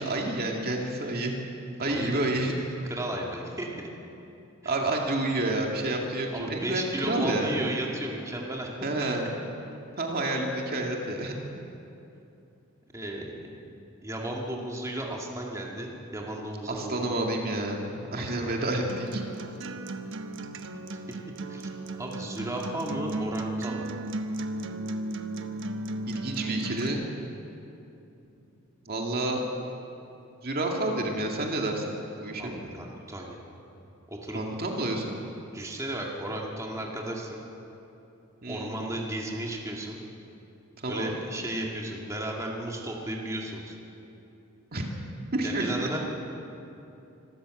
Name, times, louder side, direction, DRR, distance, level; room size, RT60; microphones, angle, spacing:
voice 1, 0.0-1.4 1.8-2.5 4.6-7.5 8.8-9.3 10.0-11.3 16.7-19.2 26.1-27.0 28.9-29.4 30.4-32.6 34.3-35.2 38.4-38.8 40.8-41.1 44.7-44.9 45.3-46.0, right 2 dB, 45° right, 1 dB, 2.2 m, -29 dB
voice 2, 1.8-2.2 2.9-3.9 4.6-4.7 6.3-8.7 12.9-13.5 14.0-17.0 18.2-18.5 20.9-21.2 21.5-21.7 22.0-23.9 32.4-33.4 34.1-34.4 35.5-37.4 38.5-40.0 40.9-43.8 45.4-46.0, right 1 dB, 15° right, -1 dB, 2.2 m, -34 dB
Acoustic guitar, 18.9-26.9, right 2 dB, 60° right, 1.1 m, -35 dB
25.5 x 13.5 x 7.8 m, 2.8 s
head